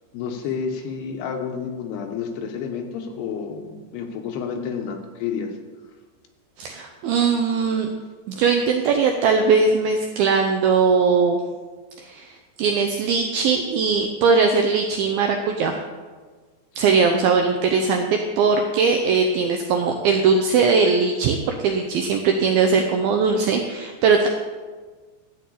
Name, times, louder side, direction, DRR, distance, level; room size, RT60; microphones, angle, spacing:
voice 1, 0.1-5.6, left 6 dB, 75° left, 4 dB, 2.8 m, -30 dB
voice 2, 6.6-7.9 8.3-11.4 12.0-15.8 16.8-24.3, right 5 dB, 85° right, 4 dB, 2.1 m, -20 dB
12.5 x 4.4 x 8.3 m, 1.4 s
omnidirectional pair, 5.0 m